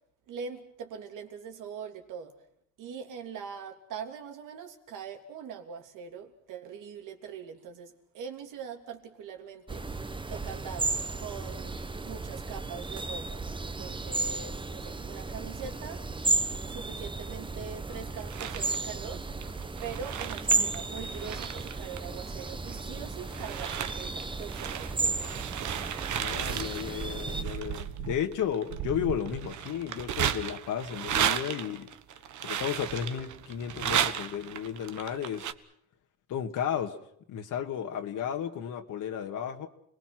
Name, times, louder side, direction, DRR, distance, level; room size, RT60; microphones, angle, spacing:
voice 1, 0.3-2.3 2.8-9.8 10.3-10.9 11.2-16.0 16.7-19.2 19.8-25.3, right 7 dB, 90° right, 4 dB, 3.2 m, -42 dB
sound 1, 9.7-27.4, right 3 dB, 15° right, 1.1 m, -34 dB
sound 2, 18.2-18.8 19.4-22.8 23.2-35.5, right 10 dB, 70° right, 1.4 m, -34 dB
voice 2, 26.1-31.9 32.4-35.5 36.3-37.0 37.3-39.7, left 9 dB, 80° left, 4 dB, 2.0 m, -33 dB
29.5 x 20.5 x 6.2 m, 0.72 s
cardioid pair, 95°, 31 cm